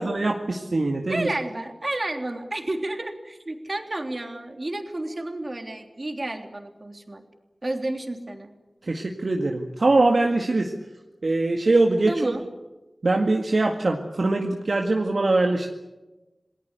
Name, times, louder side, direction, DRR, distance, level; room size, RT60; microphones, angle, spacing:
voice 1, 0.0-1.3 8.8-10.7 11.2-12.3 13.0-15.7, right 2 dB, 70° right, 1 dB, 2.0 m, -22 dB
voice 2, 1.1-7.2 7.6-8.5 12.1-12.5, right 2 dB, 45° right, 4 dB, 3.3 m, -31 dB
28.5 x 19.0 x 8.2 m, 1.1 s
wide cardioid pair, 45°, 0 cm